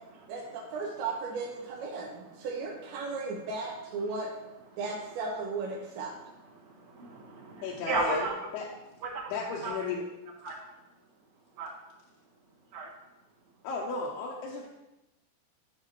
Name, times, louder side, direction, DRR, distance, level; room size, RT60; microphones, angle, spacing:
voice 1, 0.3-4.3 4.8-6.1, right 3 dB, 85° right, -3 dB, 3.1 m, -35 dB
voice 2, 6.5-8.5 9.0-9.2 9.6-9.7 10.4-10.5 11.6-11.7 12.7-12.9, right 3 dB, 65° right, -7 dB, 3.0 m, -34 dB
voice 3, 7.6-8.3 8.5-8.7 9.3-10.0 13.6-14.7, left 4 dB, 75° left, -3 dB, 2.5 m, -34 dB
12.5 x 4.8 x 3.0 m, 0.97 s
omnidirectional pair, 5.0 m